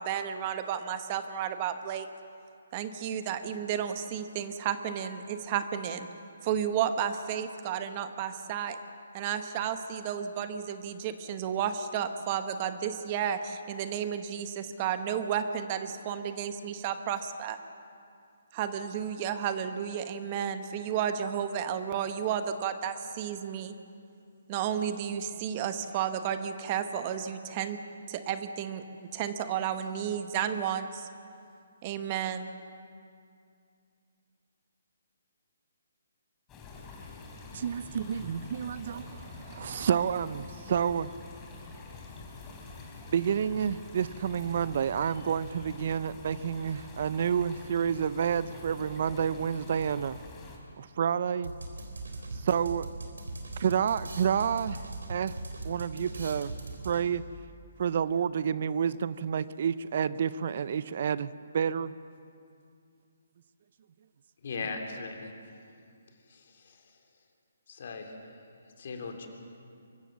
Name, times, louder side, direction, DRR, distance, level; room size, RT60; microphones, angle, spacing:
voice 1, 0.0-2.1 2.7-6.1 6.4-8.8 9.1-17.6 18.5-23.8 24.5-27.8 28.1-28.8 29.1-31.1 31.8-32.5, right 8 dB, 30° right, 1.1 m, -32 dB
sound 1, 36.5-50.6, left 3 dB, 15° left, 3.5 m, -46 dB
voice 2, 37.5-41.1 43.1-50.2 50.8-51.5 52.3-52.9 53.6-54.8 55.1-55.3 55.6-56.6 56.8-57.2 57.8-61.9, right 8 dB, 50° right, 0.5 m, -29 dB
sound 2, 51.4-57.3, right 2 dB, 80° right, 3.7 m, -40 dB
voice 3, 64.4-65.3 66.3-66.8 67.7-68.1 68.8-69.3, left 4 dB, 55° left, 3.1 m, -38 dB
24.0 x 14.5 x 7.6 m
hypercardioid pair, 150°, 0 cm